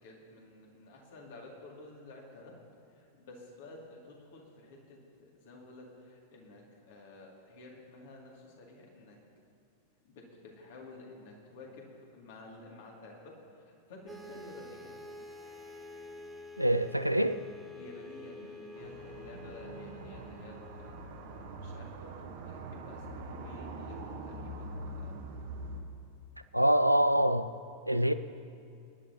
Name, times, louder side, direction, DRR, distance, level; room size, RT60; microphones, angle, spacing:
voice 1, 0.0-2.5 2.9-9.2 10.0-14.9 17.7-25.1, left 2 dB, 55° left, -1 dB, 2.6 m, -51 dB
sound 1, 14.1-21.8, left 2 dB, 10° right, 1.1 m, -48 dB
voice 2, 16.6-17.4 26.5-27.5 27.9-28.1, right 1 dB, 90° right, 11 dB, 0.3 m, -25 dB
sound 2, 18.7-25.8, right 2 dB, 55° right, 1.4 m, -43 dB
23.5 x 11.0 x 2.9 m, 2.5 s
figure-of-eight pair, 90°, 0 cm